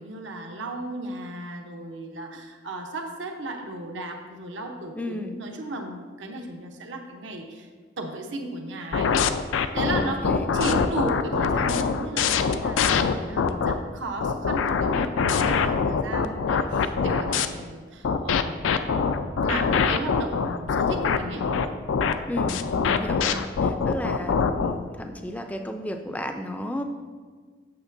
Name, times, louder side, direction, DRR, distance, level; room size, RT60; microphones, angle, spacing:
voice 1, 0.0-7.7 8.0-9.2 9.7-18.7 19.4-21.6, right 2 dB, 75° right, 3 dB, 0.8 m, -35 dB
voice 2, 5.0-5.3 9.9-10.5 22.3-26.8, left 1 dB, 10° left, 6 dB, 0.4 m, -33 dB
sound 1, 8.9-13.7 14.2-17.5 18.0-24.7, left 5 dB, 85° left, 0.4 m, -23 dB
8.8 x 6.6 x 2.6 m, 1.5 s
head